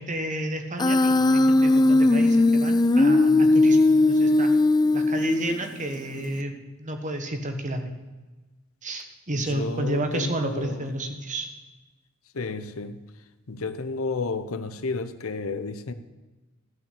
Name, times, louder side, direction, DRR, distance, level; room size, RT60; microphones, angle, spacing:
voice 1, 0.0-4.5 4.9-8.0 8.8-11.5, right 1 dB, 35° right, 5 dB, 1.4 m, -31 dB
Human voice, 0.8-5.8, left 2 dB, 20° left, 0.4 m, -19 dB
voice 2, 9.3-10.8 12.3-13.0 13.5-15.9, left 3 dB, 70° left, 11 dB, 0.8 m, -31 dB
13.0 x 6.0 x 8.2 m, 1.2 s
head